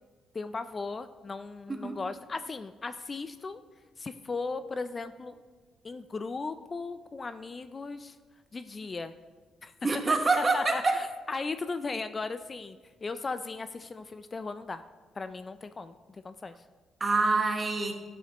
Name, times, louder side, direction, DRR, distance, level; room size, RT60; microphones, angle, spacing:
voice 1, 0.3-3.6 4.0-5.4 5.8-8.2 8.5-9.1 9.6-9.7 10.4-14.8 15.1-16.6, left 3 dB, 30° left, 11 dB, 0.3 m, -37 dB
voice 2, 9.8-11.0 17.0-17.9, right 3 dB, 30° right, 5 dB, 1.1 m, -26 dB
11.5 x 6.3 x 2.9 m, 1.4 s
cardioid pair, 90°, 0 cm